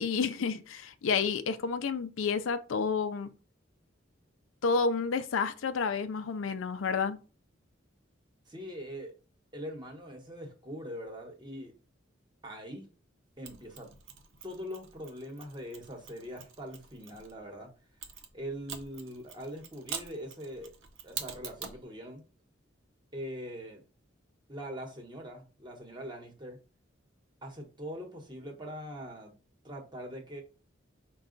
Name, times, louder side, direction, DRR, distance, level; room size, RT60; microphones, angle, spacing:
voice 1, 0.0-3.3 4.6-7.2, left 5 dB, 80° left, 0.4 m, -30 dB
voice 2, 8.5-9.1 9.5-11.7 12.4-12.9 13.4-13.9 14.4-17.7 18.3-20.7 21.0-22.2 23.1-23.8 24.5-26.6 27.4-29.3 29.6-30.4, equal, 25° right, 1.0 m, -42 dB
Mechanisms, 13.4-17.3 18.0-21.8, right 7 dB, 75° right, 0.7 m, -45 dB
5.3 x 2.3 x 3.8 m
head